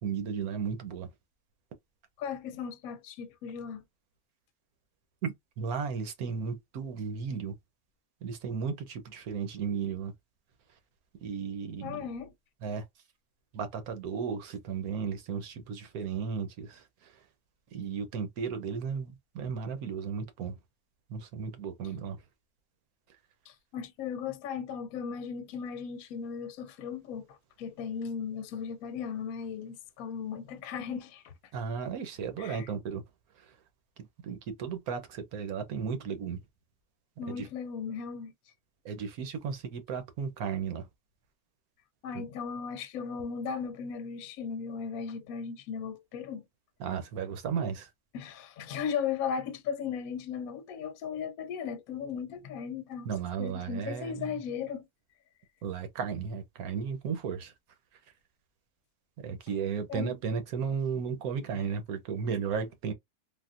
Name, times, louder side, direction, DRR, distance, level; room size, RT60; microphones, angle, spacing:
voice 1, 0.0-1.1 5.2-7.5 8.2-10.1 11.2-12.1 12.6-12.8 13.5-16.8 17.7-20.6 21.1-22.2 31.5-33.0 34.2-36.4 37.3-37.5 38.8-40.8 42.1-42.2 46.8-47.9 53.0-54.3 55.6-57.5 59.2-62.9, right 6 dB, 75° right, 1.2 m, -34 dB
voice 2, 2.2-3.8 11.8-12.3 23.5-31.3 32.4-32.7 37.2-38.3 42.0-46.4 48.1-53.1 53.4-54.9 59.9-60.2, left 7 dB, 75° left, 1.0 m, -37 dB
3.6 x 2.4 x 2.4 m
omnidirectional pair, 1.6 m